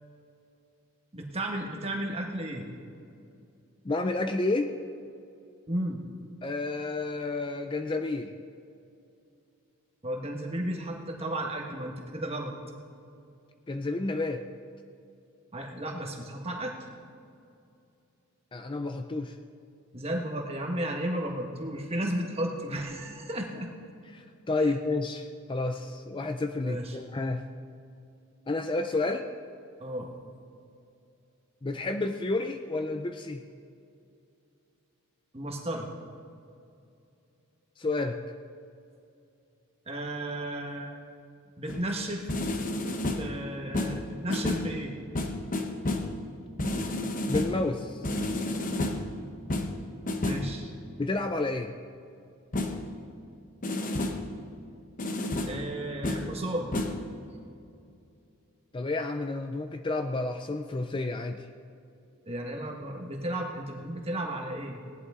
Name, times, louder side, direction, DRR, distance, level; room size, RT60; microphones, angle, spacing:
voice 1, 1.1-2.6 5.7-6.0 10.0-12.5 15.5-16.8 19.9-23.7 26.6-27.0 29.8-30.1 35.3-35.9 39.9-41.0 41.6-42.3 42.6-42.7 43.2-45.0 50.2-50.7 55.4-56.7 62.2-64.8, right 1 dB, 30° right, 1 dB, 1.5 m, -33 dB
voice 2, 3.8-4.7 6.4-8.3 13.7-14.4 18.5-19.4 24.1-27.4 28.5-29.2 31.6-33.4 37.8-38.2 47.3-48.1 51.0-51.7 58.7-61.4, left 2 dB, 20° left, 6 dB, 0.4 m, -30 dB
sound 1, 41.7-41.9 42.3-43.4 43.7-44.8 45.1-46.2 46.6-47.7 48.0-49.1 49.5-50.6 52.5-52.9 53.6-54.3 55.0-55.7 56.0-56.4 56.7-57.1, left 2 dB, 40° left, 0.9 m, -31 dB
18.0 x 11.0 x 3.7 m, 2.5 s
head